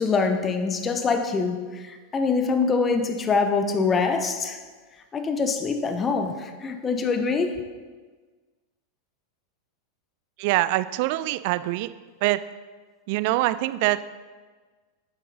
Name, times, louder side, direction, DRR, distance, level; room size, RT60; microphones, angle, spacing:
voice 1, 0.0-4.6 5.1-7.6, left 4 dB, 20° left, 7 dB, 0.8 m, -24 dB
voice 2, 10.4-11.9 12.2-12.4 13.1-14.0, right 17 dB, 45° right, 14 dB, 0.3 m, -24 dB
8.3 x 7.3 x 4.0 m, 1.4 s
figure-of-eight pair, 90°, 0 cm